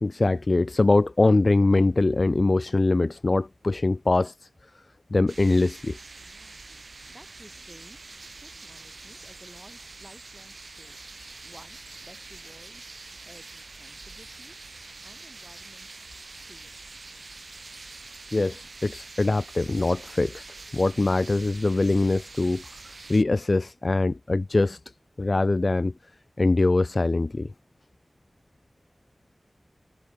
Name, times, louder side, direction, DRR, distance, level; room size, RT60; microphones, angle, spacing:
voice 1, 0.0-4.5 5.1-6.0 18.3-20.5 20.7-22.8 23.1-24.8 25.2-25.9 26.4-27.5, left 2 dB, 50° left, 0.3 m, -23 dB
sound 1, 5.3-23.2, right 3 dB, 65° right, 1.1 m, -45 dB
voice 2, 6.9-16.0 16.4-16.9, right 1 dB, 10° right, 5.8 m, -54 dB
wide cardioid pair, 70°, 0 cm